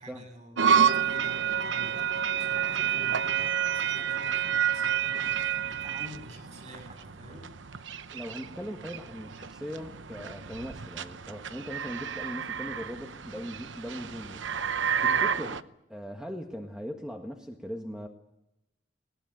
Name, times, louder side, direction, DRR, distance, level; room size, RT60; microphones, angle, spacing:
voice 1, 0.0-7.5 15.0-15.2, equal, 40° right, 4 dB, 7.9 m, -47 dB
sound 1, 0.6-15.6, right 8 dB, 90° right, 0.9 m, -30 dB
voice 2, 8.1-14.5 15.0-15.6 15.9-18.1, equal, 5° right, 2 dB, 1.6 m, -39 dB
20.5 x 20.0 x 8.9 m, 0.89 s
head